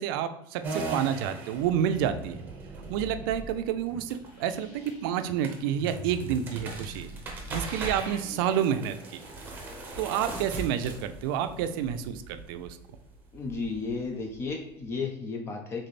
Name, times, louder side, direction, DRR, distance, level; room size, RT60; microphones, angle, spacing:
voice 1, 0.0-2.5 2.9-7.1 7.5-9.0 10.0-12.8, right 9 dB, 85° right, 9 dB, 0.4 m, -29 dB
sound 1, 0.6-14.9, right 2 dB, 15° right, 0.8 m, -40 dB
sound 2, 1.6-10.2, equal, 75° left, 1.3 m, -45 dB
voice 2, 13.3-15.9, left 4 dB, 20° left, 3 dB, 0.4 m, -33 dB
3.7 x 3.3 x 4.0 m, 0.81 s
cardioid pair, 175°, 11 cm